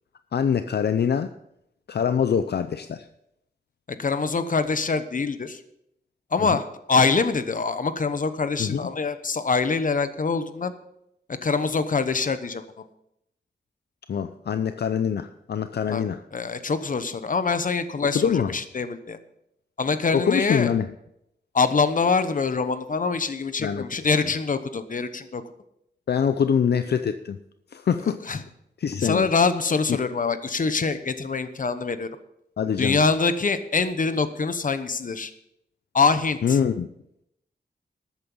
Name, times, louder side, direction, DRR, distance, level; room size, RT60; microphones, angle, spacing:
voice 1, 0.3-1.3 1.9-3.1 6.4-6.6 8.6-8.9 14.1-16.2 18.1-18.6 20.1-20.9 23.6-24.0 26.1-27.4 27.7-28.3 28.8-29.3 29.9-30.0 32.6-33.0 36.4-36.9, left 7 dB, 70° left, 10 dB, 0.5 m, -24 dB
voice 2, 4.0-5.6 6.3-10.7 11.4-12.6 15.9-16.1 16.3-19.2 19.8-20.7 21.5-25.4 28.3-28.4 29.0-32.1 32.8-35.3 35.9-36.6, left 4 dB, 50° left, 11 dB, 1.0 m, -24 dB
13.0 x 8.9 x 5.5 m, 0.79 s
wide cardioid pair, 100°, 17 cm